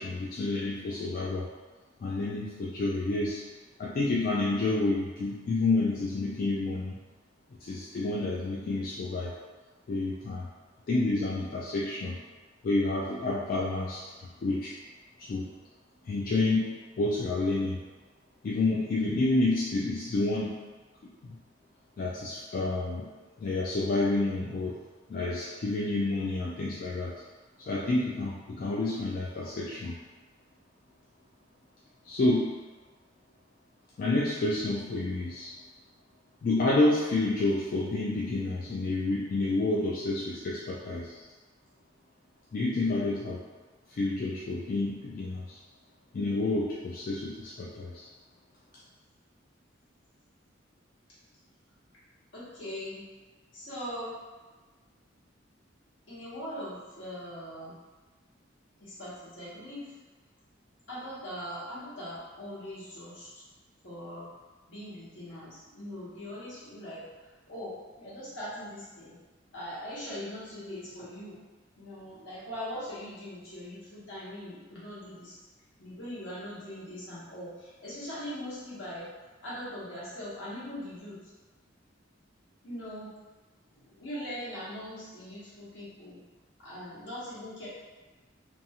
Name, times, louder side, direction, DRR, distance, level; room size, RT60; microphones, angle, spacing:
voice 1, 0.0-1.5 2.0-3.4 3.8-7.0 7.6-9.3 9.9-10.5 10.9-12.2 12.6-14.7 15.2-15.5 16.0-17.8 18.4-20.6 21.2-21.4 22.0-23.1 23.4-24.8 25.1-27.1 27.6-30.0 32.0-32.6 34.0-35.5 36.4-41.2 42.5-43.4 43.9-45.6 46.1-48.1, left 2 dB, 45° left, -5 dB, 0.3 m, -29 dB
voice 2, 52.3-53.0 53.5-54.2 56.1-57.8 58.8-59.9 60.9-63.4 63.8-64.3 64.7-69.2 69.5-71.4 71.8-75.4 75.8-79.1 79.4-81.2 82.6-83.1 83.7-86.2 86.6-87.7, equal, 70° left, -8 dB, 1.1 m, -41 dB
2.6 x 2.3 x 2.8 m, 1.3 s
head